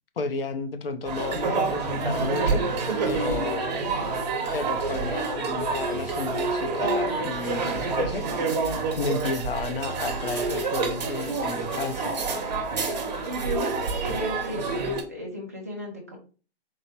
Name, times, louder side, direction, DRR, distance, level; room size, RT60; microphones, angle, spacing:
voice 1, 0.2-2.6 3.0-3.6 4.5-8.5 9.0-12.1, left 4 dB, 60° left, 0.7 m, -32 dB
sound 1, 1.1-15.0, right 3 dB, 40° right, 1.0 m, -27 dB
voice 2, 14.0-16.2, equal, 15° right, 0.4 m, -35 dB
4.5 x 2.1 x 4.2 m
hypercardioid pair, 170°, 33 cm